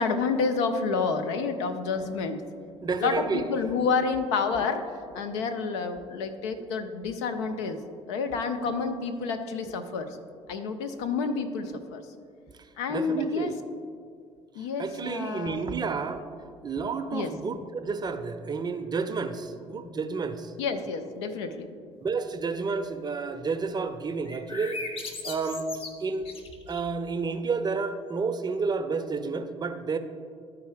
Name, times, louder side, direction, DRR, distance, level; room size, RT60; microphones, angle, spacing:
voice 1, 0.0-2.4 3.0-4.8 5.1-7.8 8.1-10.2 10.5-12.0 12.8-13.5 14.6-15.7 17.1-17.3 20.6-21.7, left 5 dB, 70° left, 6 dB, 0.6 m, -29 dB
voice 2, 2.8-3.5 12.9-13.5 14.8-16.2 16.6-20.5 22.0-24.8 25.2-25.7 26.0-26.3 26.7-30.0, right 4 dB, 25° right, 9 dB, 0.6 m, -30 dB
sound 1, 24.3-27.0, left 3 dB, 40° left, 1.0 m, -39 dB
12.5 x 4.7 x 3.5 m, 2.2 s
figure-of-eight pair, 55°, 16 cm